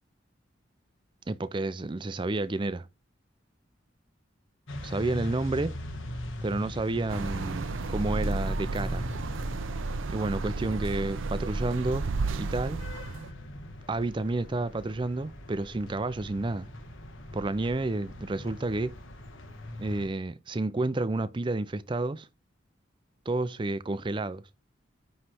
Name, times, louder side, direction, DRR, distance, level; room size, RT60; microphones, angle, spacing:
voice 1, 1.3-2.9 4.8-5.7 6.4-9.0 10.1-12.1 12.3-12.8 13.9-16.7 17.3-18.9 19.8-22.3 23.3-24.4, right 2 dB, 25° right, 0.4 m, -30 dB
sound 1, 4.7-20.1, left 1 dB, 85° left, 1.4 m, -42 dB
sound 2, 7.1-13.3, right 3 dB, 90° right, 0.6 m, -32 dB
9.7 x 3.2 x 5.8 m
head